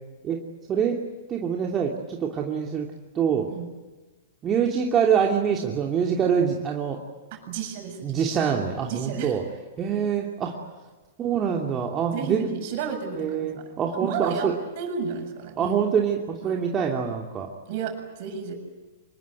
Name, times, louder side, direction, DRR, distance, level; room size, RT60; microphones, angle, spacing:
voice 1, 1.3-2.9 3.1-3.5 4.4-7.0 8.0-9.4 9.8-10.5 11.2-12.5 13.1-14.5 15.6-17.5, right 7 dB, 25° right, 0 dB, 2.9 m, -25 dB
voice 2, 7.3-8.3 8.9-9.4 12.1-15.8 16.4-16.7 17.7-18.5, right 6 dB, 50° right, 5 dB, 7.4 m, -33 dB
26.0 x 22.0 x 9.2 m, 1.2 s
figure-of-eight pair, 105°, 0 cm